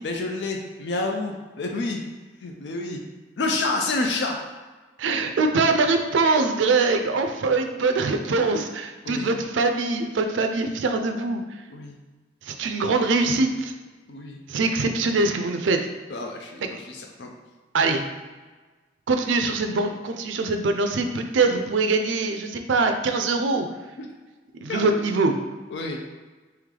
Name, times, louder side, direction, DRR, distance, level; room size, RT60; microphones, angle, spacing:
voice 1, 0.0-2.0 2.4-3.0 3.4-4.4 9.0-9.3 11.7-12.0 14.1-14.4 16.1-17.3 24.0-24.1 24.7-25.0 25.7-26.0, left 2 dB, 65° left, 2 dB, 0.4 m, -29 dB
voice 2, 5.0-11.4 12.4-13.7 14.5-15.8 17.7-18.0 19.1-23.7 24.6-25.3, right 3 dB, 80° right, 6 dB, 0.4 m, -23 dB
3.2 x 3.1 x 3.7 m, 1.3 s
head